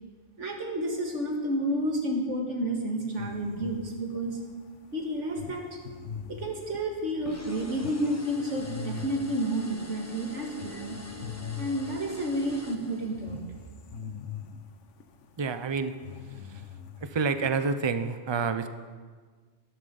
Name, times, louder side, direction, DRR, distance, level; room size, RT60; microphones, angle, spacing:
voice 1, 0.4-4.4 4.9-5.6 6.3-11.0 11.6-13.4, right 1 dB, 70° right, 1 dB, 2.3 m, -30 dB
sound 1, 3.2-11.8 12.2-17.7, left 6 dB, 75° left, 1.2 m, -43 dB
sound 2, 7.3-13.4, left 2 dB, 15° left, 1.1 m, -45 dB
voice 2, 15.4-15.9 17.0-18.7, right 5 dB, 30° right, 10 dB, 0.5 m, -28 dB
13.5 x 13.0 x 5.4 m, 1.5 s
omnidirectional pair, 1.3 m